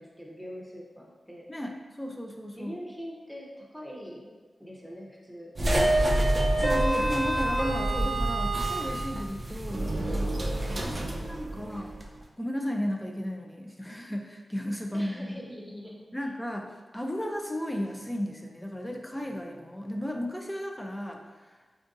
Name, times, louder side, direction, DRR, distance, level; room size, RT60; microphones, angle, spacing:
voice 1, 0.0-1.5 2.5-4.3 4.6-5.5 11.5-11.6 14.9-16.1, equal, ahead, -3 dB, 0.9 m, -43 dB
voice 2, 1.5-2.8 6.6-10.3 10.8-11.9 12.4-15.4 16.1-21.6, equal, 15° left, 2 dB, 0.5 m, -34 dB
sound 1, 5.6-12.1, right 1 dB, 40° right, 0.5 m, -27 dB
4.4 x 2.5 x 2.5 m, 1.3 s
cardioid pair, 45°, 0 cm